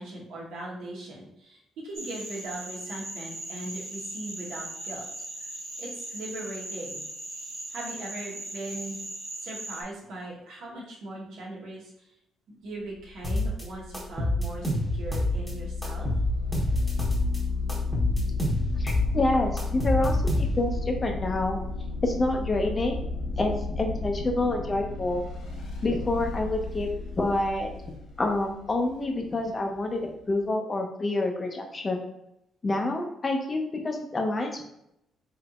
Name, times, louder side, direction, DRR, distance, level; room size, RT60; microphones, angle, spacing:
voice 1, 0.0-5.0 5.4-5.5 5.8-7.0 7.7-9.0 9.4-12.1 12.6-16.1, right 1 dB, 80° right, -3 dB, 1.1 m, -39 dB
sound 1, 1.9-9.8, right 1 dB, 60° right, 1.2 m, -39 dB
sound 2, 13.0-30.4, left 3 dB, 85° left, 1.3 m, -33 dB
sound 3, 13.2-13.6 13.9-15.5 15.8-17.4 17.7-20.8, left 1 dB, 5° right, 1.0 m, -27 dB
voice 2, 18.8-21.6 22.0-23.0 23.4-25.2 25.8-27.7 28.2-30.0 30.3-32.0 32.6-34.6, left 2 dB, 30° left, 3 dB, 0.6 m, -27 dB
3.4 x 3.2 x 2.4 m, 0.81 s
cardioid pair, 90°, 0 cm